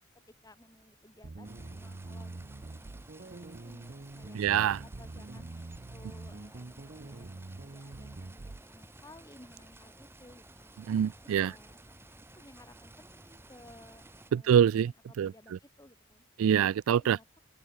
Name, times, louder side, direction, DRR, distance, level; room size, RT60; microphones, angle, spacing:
voice 1, 0.0-4.4 4.8-10.7 11.4-11.8 12.4-14.9 15.2-16.2 17.0-17.4, left 1 dB, 15° left, 3.3 m, -57 dB
sound 1, 1.2-8.6, right 2 dB, 40° right, 0.7 m, -45 dB
sound 2, 1.4-14.3, right 2 dB, 10° right, 1.2 m, -54 dB
voice 2, 4.3-4.8 10.9-11.5 14.3-14.9 15.2-15.3 16.4-17.2, right 9 dB, 80° right, 0.3 m, -25 dB
open air
head